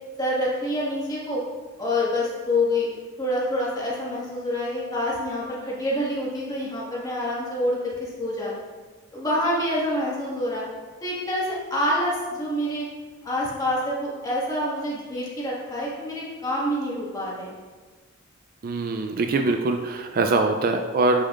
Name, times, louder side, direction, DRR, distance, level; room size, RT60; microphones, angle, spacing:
voice 1, 0.2-1.4 1.8-8.5 9.1-10.6 11.0-12.9 13.2-17.6, left 1 dB, 20° left, -6 dB, 1.7 m, -27 dB
voice 2, 18.6-21.2, right 3 dB, 45° right, 5 dB, 0.4 m, -23 dB
8.4 x 5.4 x 2.5 m, 1.4 s
head